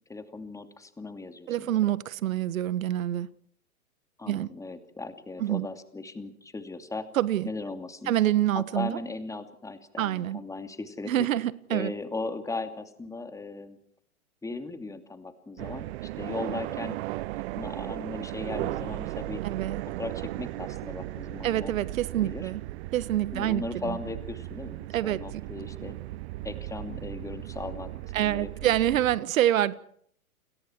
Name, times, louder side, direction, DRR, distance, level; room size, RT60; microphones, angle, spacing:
voice 1, 0.1-1.9 4.2-7.1 7.4-8.1 8.5-11.3 11.7-13.8 14.4-17.0 17.6-19.4 19.8-21.7 22.2-22.5 23.3-26.0 26.4-27.9 28.2-28.7, left 3 dB, 5° left, 2.7 m, -37 dB
voice 2, 1.5-3.3 4.3-4.5 5.4-5.7 7.1-7.5 8.1-9.0 10.0-10.4 11.0-11.9 19.4-19.8 21.4-22.6 22.9-24.0 24.9-25.4 28.1-29.7, right 12 dB, 65° right, 1.5 m, -26 dB
sound 1, 15.6-29.2, right 17 dB, 45° right, 1.0 m, -36 dB
29.5 x 22.5 x 4.7 m
hypercardioid pair, 120°, 43 cm